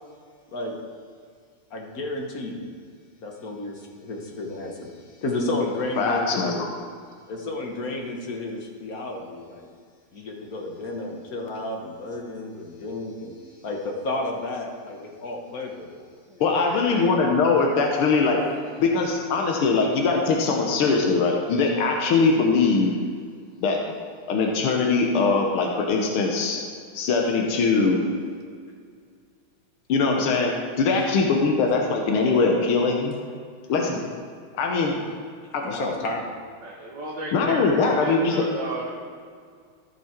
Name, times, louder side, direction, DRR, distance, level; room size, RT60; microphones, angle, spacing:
voice 1, 1.7-2.7 3.2-6.7 7.3-9.7 10.1-16.1 35.6-36.4, left 2 dB, 50° left, 1 dB, 1.4 m, -32 dB
voice 2, 6.0-6.6 16.4-18.4 18.8-22.9 23.6-23.8 24.3-26.6 26.9-28.0 29.9-33.2 33.7-34.0 34.5-35.0 35.5-35.8 37.3-38.4, left 4 dB, 85° left, 1 dB, 1.9 m, -21 dB
voice 3, 16.3-17.1 36.6-38.9, right 2 dB, 60° right, -4 dB, 1.8 m, -34 dB
14.5 x 6.2 x 4.4 m, 2.1 s
omnidirectional pair, 2.3 m